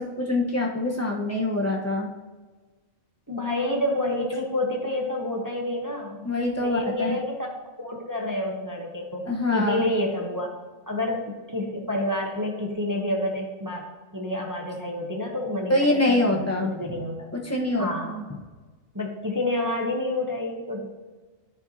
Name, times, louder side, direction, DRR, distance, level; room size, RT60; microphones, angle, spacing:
voice 1, 0.0-2.1 6.2-7.2 9.3-9.9 15.7-17.0 17.3-18.2, left 2 dB, 15° left, -2 dB, 1.0 m, -25 dB
voice 2, 3.3-6.3 6.6-7.3 7.8-9.2 9.5-10.5 10.9-13.9 14.1-17.3 17.8-18.1 18.9-20.9, left 1 dB, 15° right, -1 dB, 0.8 m, -28 dB
13.0 x 4.5 x 2.7 m, 1.3 s
omnidirectional pair, 1.4 m